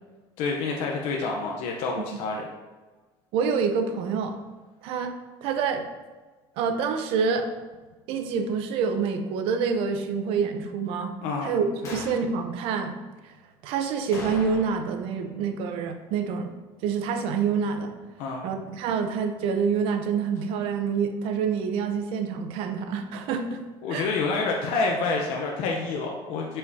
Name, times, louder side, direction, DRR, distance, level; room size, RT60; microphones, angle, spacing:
voice 1, 0.4-2.5 11.2-11.5 11.8-12.0 18.2-18.5 23.8-26.6, left 3 dB, 75° left, -1 dB, 0.9 m, -28 dB
voice 2, 3.3-4.3 4.8-5.1 5.4-5.9 6.6-7.5 8.1-11.1 11.4-12.9 13.6-16.5 16.8-17.9 18.4-23.6 23.9-24.1, right 6 dB, 70° right, 6 dB, 0.8 m, -27 dB
sound 1, 11.8-12.3 14.1-15.0 15.2-15.3 20.3-20.5, left 1 dB, 30° left, 1.9 m, -39 dB
8.1 x 5.5 x 2.8 m, 1.3 s
cardioid pair, 155°, 10 cm